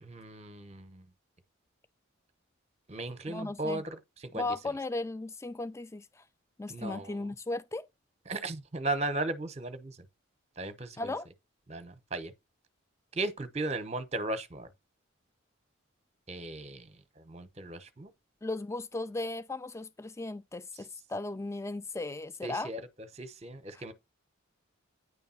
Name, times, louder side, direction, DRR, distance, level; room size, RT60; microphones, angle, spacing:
voice 1, 0.0-1.0 2.9-4.0 4.3-4.5 6.7-7.1 8.3-9.9 10.6-11.0 11.7-12.3 13.2-14.7 16.3-16.9 17.3-18.1 22.4-22.8 23.2-23.9, right 2 dB, 30° right, 0.9 m, -36 dB
voice 2, 3.3-3.8 4.3-6.2 6.6-7.9 11.0-11.3 18.4-22.7 23.7-23.8, left 2 dB, 15° left, 0.4 m, -36 dB
9.4 x 3.4 x 5.6 m
head